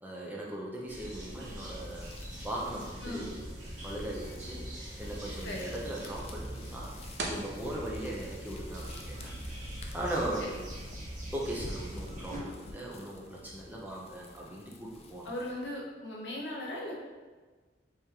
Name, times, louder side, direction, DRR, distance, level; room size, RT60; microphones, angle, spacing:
voice 1, 0.0-2.1 2.4-3.5 3.8-4.7 5.0-6.9 7.2-9.3 9.9-10.4 11.3-15.3, right 1 dB, 10° right, -4 dB, 0.7 m, -38 dB
sound 1, 0.9-12.4, right 1 dB, 45° right, 1.1 m, -42 dB
sound 2, 1.3-15.8, left 2 dB, 35° left, 0.4 m, -50 dB
sound 3, 6.9-10.2, right 2 dB, 75° right, 0.7 m, -45 dB
voice 2, 15.2-17.0, left 1 dB, 75° left, -3 dB, 1.1 m, -38 dB
5.0 x 3.6 x 2.9 m, 1.4 s
head